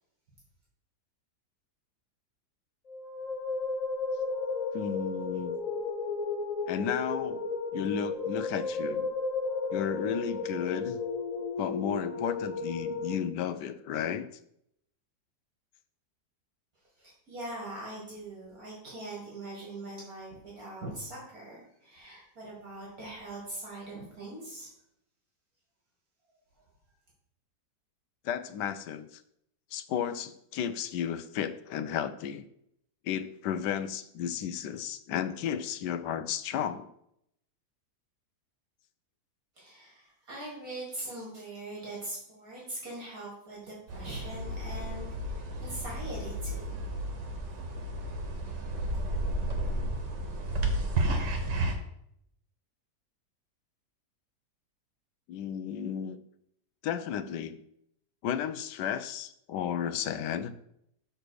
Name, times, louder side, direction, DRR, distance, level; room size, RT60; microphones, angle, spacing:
sound 1, 2.9-13.1, left 4 dB, 65° left, 0.4 m, -33 dB
voice 1, 4.7-5.5 6.7-9.1 9.7-11.0 11.6-14.3 28.2-29.2 29.7-32.4 33.0-36.9 55.3-56.2 56.8-57.6 58.2-60.5, left 8 dB, 80° left, 11 dB, 1.2 m, -33 dB
voice 2, 17.0-24.7 39.6-46.9, right 1 dB, 55° right, -4 dB, 2.4 m, -42 dB
sound 2, 43.9-51.7, right 1 dB, 80° right, 1.7 m, -32 dB
6.6 x 4.0 x 6.2 m, 0.74 s
omnidirectional pair, 1.8 m